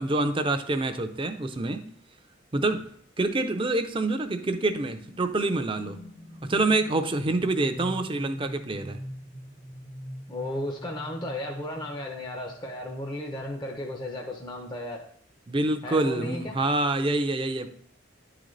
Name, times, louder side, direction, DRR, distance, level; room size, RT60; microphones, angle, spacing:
voice 1, 0.0-1.9 2.5-2.9 3.2-6.0 6.4-9.0 15.5-17.7, right 2 dB, 25° right, 8 dB, 0.5 m, -26 dB
sound 1, 3.2-13.5, equal, 75° left, 1.3 m, -44 dB
voice 2, 10.3-15.0 15.8-16.5, left 1 dB, 20° left, 1 dB, 0.6 m, -34 dB
10.5 x 3.9 x 3.1 m, 0.62 s
head